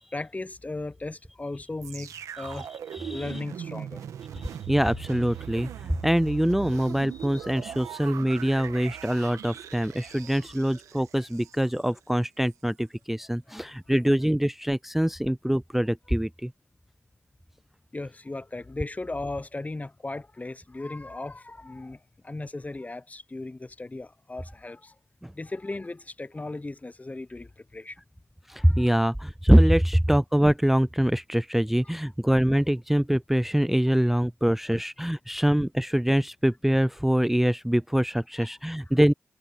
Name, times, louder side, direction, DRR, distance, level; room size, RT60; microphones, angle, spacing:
voice 1, 0.1-2.7 3.1-4.0 7.1-7.5 13.6-13.7 17.9-25.0 25.3-28.0 28.5-28.9 34.7-34.8 38.4-38.5, left 2 dB, 30° left, 0.9 m, -37 dB
sound 1, 1.8-11.9 12.5-12.6, right 9 dB, 90° right, 1.4 m, -40 dB
voice 2, 2.9-3.3 4.3-16.5 25.2-25.3 28.5-39.1, equal, 5° right, 0.4 m, -24 dB
supercardioid pair, 40°, 5 cm